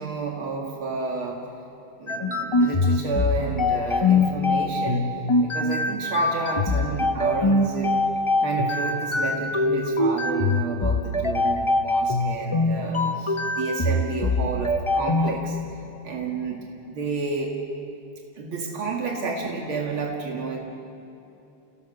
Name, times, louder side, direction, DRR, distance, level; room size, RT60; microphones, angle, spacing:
voice 1, 0.0-1.4 2.0-5.1 5.4-8.0 8.4-15.6 16.0-17.5 18.4-20.6, right 4 dB, 85° right, -1 dB, 2.9 m, -30 dB
sound 1, 2.1-15.3, left 2 dB, 50° left, 0.3 m, -23 dB
29.0 x 17.5 x 6.8 m, 2.8 s
omnidirectional pair, 2.2 m